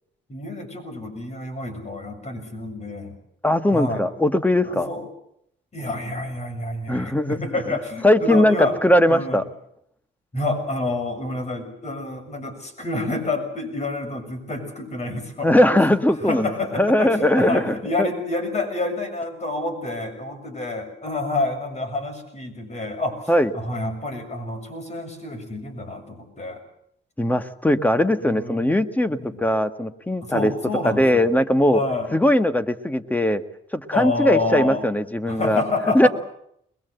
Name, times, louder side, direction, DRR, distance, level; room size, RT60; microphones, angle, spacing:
voice 1, 0.3-3.2 3.7-4.0 4.6-5.0 5.7-8.8 9.1-9.4 10.3-15.5 16.2-26.6 28.2-28.8 29.1-29.5 30.2-31.3 31.7-32.1 33.9-34.8 35.2-36.1, left 2 dB, 35° left, 6 dB, 6.8 m, -28 dB
voice 2, 3.4-4.9 6.9-7.4 8.0-9.4 15.4-18.1 23.3-23.5 27.2-30.5 30.8-31.8 32.1-33.4 33.7-35.6 35.9-36.1, left 1 dB, 10° left, 9 dB, 1.5 m, -19 dB
22.5 x 21.5 x 8.0 m, 0.74 s
cardioid pair, 90°, 20 cm